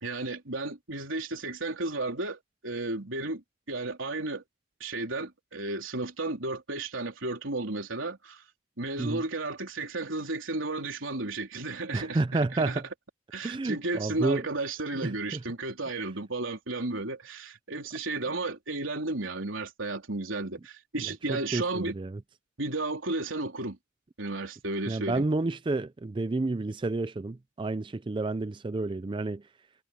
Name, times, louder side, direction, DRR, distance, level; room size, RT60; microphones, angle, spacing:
voice 1, 0.0-4.4 4.8-8.4 8.8-12.8 13.3-21.9 22.6-23.8 24.2-25.3, right 2 dB, 85° right, 3.6 m, -33 dB
voice 2, 11.9-12.8 13.4-14.4 15.0-15.4 21.0-22.2 24.9-29.4, right 2 dB, 25° right, 0.4 m, -30 dB
head